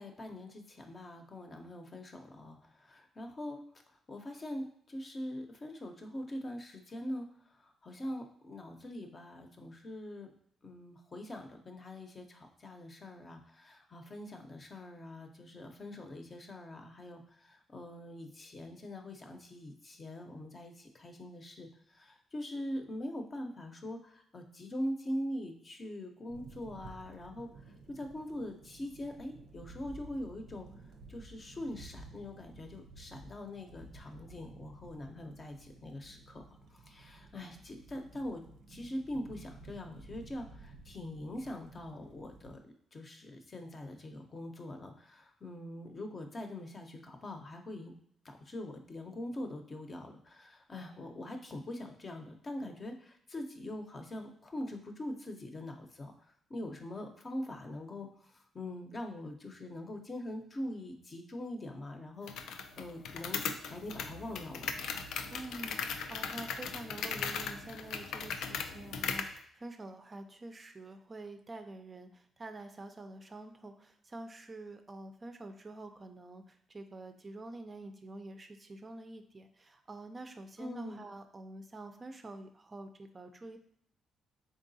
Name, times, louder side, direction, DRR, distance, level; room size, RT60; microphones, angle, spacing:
voice 1, 0.0-3.6 4.1-7.3 7.6-10.3 10.6-27.5 27.9-30.7 31.1-36.4 36.7-38.4 38.7-42.6 42.9-47.9 48.2-56.1 56.5-63.4 63.7-64.7 80.6-81.0, left 1 dB, 35° left, 5 dB, 0.7 m, -43 dB
sound 1, 26.3-42.6, right 3 dB, 80° right, 0.5 m, -54 dB
sound 2, 62.3-69.4, left 6 dB, 80° left, 0.3 m, -38 dB
voice 2, 65.3-83.6, right 2 dB, 30° right, 6 dB, 0.4 m, -47 dB
3.8 x 3.6 x 2.7 m, 0.66 s
cardioid pair, 90°, 0 cm